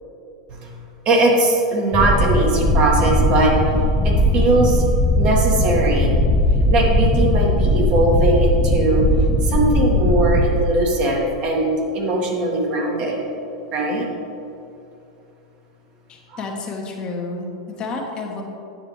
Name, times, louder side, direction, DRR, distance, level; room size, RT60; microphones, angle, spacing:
voice 1, 1.0-3.5 4.0-4.8 5.1-6.2 6.7-9.0 9.4-13.2 13.7-14.0 16.3-16.4, right 2 dB, 45° right, -1 dB, 1.5 m, -20 dB
sound 1, 1.9-10.6, left 1 dB, 10° left, 0.5 m, -18 dB
voice 2, 16.1-18.4, left 3 dB, 35° left, 0 dB, 1.2 m, -30 dB
9.4 x 6.5 x 3.2 m, 2.7 s
hypercardioid pair, 100°, 3 cm